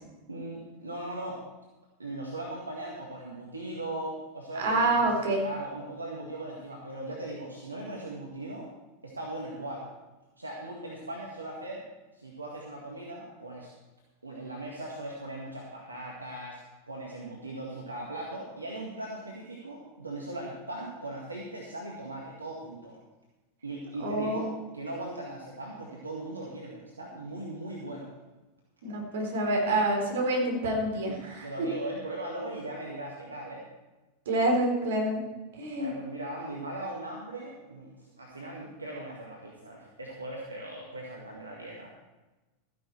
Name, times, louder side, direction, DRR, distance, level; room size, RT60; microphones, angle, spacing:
voice 1, 0.3-1.4 2.0-5.1 5.4-8.7 9.0-9.9 10.4-11.8 12.1-13.7 14.2-16.6 16.9-23.0 23.6-28.1 31.1-31.2 31.4-33.7 35.8-41.9, right 1 dB, 90° right, -2 dB, 1.8 m, -39 dB
voice 2, 4.6-5.5 24.0-24.5 28.8-31.7 34.3-35.2 35.5-35.9, right 1 dB, 65° right, 1 dB, 3.8 m, -27 dB
14.0 x 10.5 x 4.5 m, 1.1 s
figure-of-eight pair, 90°, 0 cm